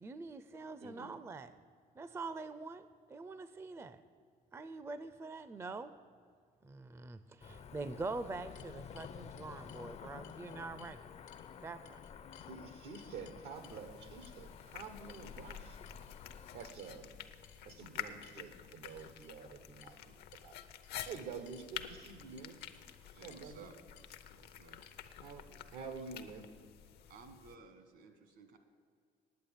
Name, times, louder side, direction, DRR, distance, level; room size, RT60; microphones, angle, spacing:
voice 1, 0.0-1.5 2.0-4.0 4.5-5.9 6.6-11.1 11.6-12.0, right 3 dB, 15° right, 13 dB, 0.4 m, -44 dB
voice 2, 0.8-1.2 12.5-15.8 16.5-17.1 17.6-20.5 21.1-22.5 23.2-23.7 25.2-25.4 25.7-26.4, right 5 dB, 90° right, 8 dB, 1.2 m, -48 dB
Cricket / Motor vehicle (road), 7.4-16.7, left 7 dB, 40° left, 0.5 m, -51 dB
sound 1, 8.0-9.8 10.2-11.0 11.3-11.5 11.8-12.5 12.9-13.8 14.2-14.4 15.1-15.6 15.8-16.2 16.6-17.0 17.4-17.8 18.2-18.4 18.8-19.3 19.8-20.0 20.3-20.5 20.8-21.7 22.3-22.8 23.3-23.5 23.9-24.1 24.8-24.9, left 12 dB, 90° left, 1.2 m, -62 dB
sound 2, 13.5-27.5, left 9 dB, 75° left, 0.7 m, -50 dB
voice 3, 23.1-23.8 24.1-24.8 27.1-28.6, right 4 dB, 75° right, 8 dB, 1.6 m, -57 dB
9.4 x 8.5 x 8.8 m, 2.1 s
cardioid pair, 110°, 17 cm